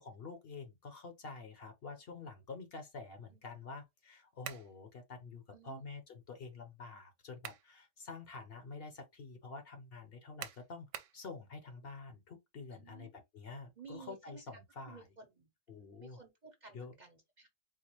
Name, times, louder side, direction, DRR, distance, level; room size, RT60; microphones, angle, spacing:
voice 1, 0.0-10.9 11.1-15.1 15.7-16.2 16.7-16.9, left 4 dB, 55° left, 0.9 m, -48 dB
sound 1, 4.4-4.7 7.1-7.7 8.2-8.3 10.4-11.2, right 10 dB, 75° right, 0.9 m, -45 dB
voice 2, 12.7-13.1 13.8-14.4 14.9-15.5 16.0-17.5, right 5 dB, 40° right, 0.7 m, -54 dB
4.1 x 2.3 x 2.9 m
omnidirectional pair, 1.3 m